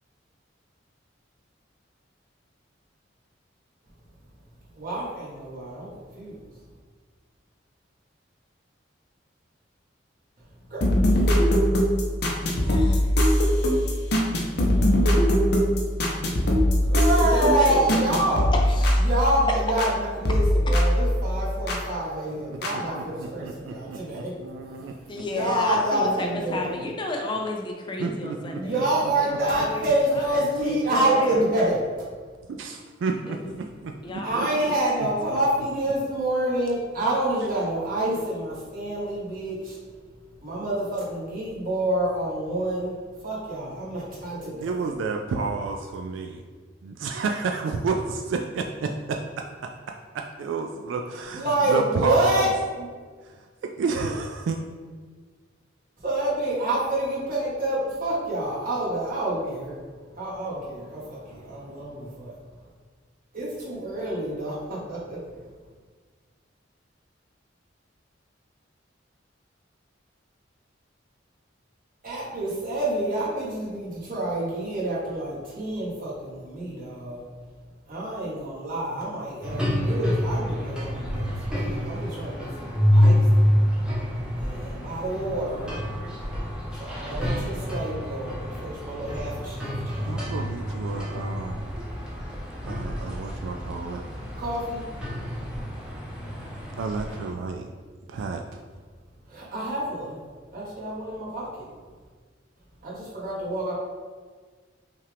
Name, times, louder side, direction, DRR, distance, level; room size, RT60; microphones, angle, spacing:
voice 1, 4.8-5.9 6.1-6.4 10.7-11.2 16.9-18.5 19.0-24.3 25.2-26.6 28.5-31.8 34.2-39.8 40.4-43.0 43.2-44.9 51.3-52.5 52.8-52.9 56.0-59.7 60.2-62.3 63.3-65.2 72.0-77.2 77.9-83.2 84.4-85.7 86.8-90.2 94.4-94.8 99.3-100.1 100.5-101.5 102.8-103.7, right 1 dB, 45° right, -7 dB, 1.5 m, -27 dB
sound 1, 10.8-20.0 20.2-21.8 22.6-22.7, equal, 55° left, 0.7 m, -21 dB
voice 2, 12.6-13.1 17.2-18.2 18.5-19.0 19.5-19.6 20.7-20.8 25.1-28.8 29.2-30.3 30.6-31.5 33.3-33.4 34.0-34.5 34.9-35.0, left 2 dB, 25° left, 2 dB, 0.4 m, -32 dB
voice 3, 22.7-25.2 26.3-26.4 26.7-26.9 28.0-28.6 29.0-29.7 30.7-31.4 32.5-34.7 35.0-35.1 44.6-46.4 46.8-49.2 50.1-52.5 53.8-54.6 90.1-91.7 92.6-94.0 96.8-97.7 98.1-98.6, right 4 dB, 75° right, 3 dB, 0.3 m, -31 dB
sound 2, 79.4-97.3, equal, 5° right, 0.8 m, -27 dB
5.5 x 2.4 x 3.4 m, 1.5 s
head